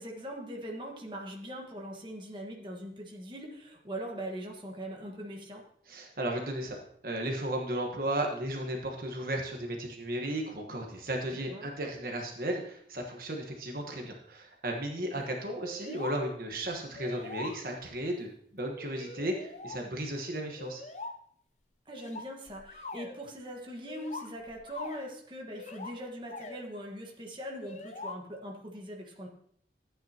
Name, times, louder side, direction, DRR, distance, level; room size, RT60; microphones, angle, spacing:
voice 1, 0.0-5.6 11.3-11.7 15.1-15.3 21.8-29.3, equal, 25° right, 0 dB, 1.5 m, -41 dB
voice 2, 5.9-20.8, right 1 dB, 50° right, 1 dB, 1.3 m, -35 dB
sound 1, 15.6-16.2 16.5-16.6 16.9-17.9 18.8-19.8 20.6-21.2 21.9-23.2 23.9-25.2 25.5-25.9 26.3-26.6 27.6-28.2, left 3 dB, 40° left, 0.7 m, -42 dB
14.0 x 8.9 x 2.9 m, 0.66 s
head